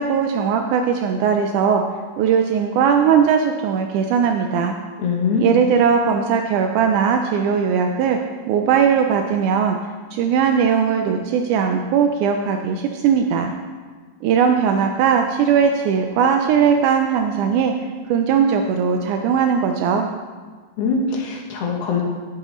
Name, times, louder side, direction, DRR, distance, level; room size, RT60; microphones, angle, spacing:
voice 1, 0.0-1.8 2.2-4.8 5.4-8.2 8.5-9.8 10.1-13.5 14.2-17.7 18.1-20.1, right 7 dB, 85° right, 4 dB, 1.7 m, -19 dB
voice 2, 5.0-5.6 20.8-22.0, left 5 dB, 80° left, 0 dB, 1.3 m, -22 dB
12.0 x 7.9 x 3.1 m, 1.5 s
omnidirectional pair, 4.1 m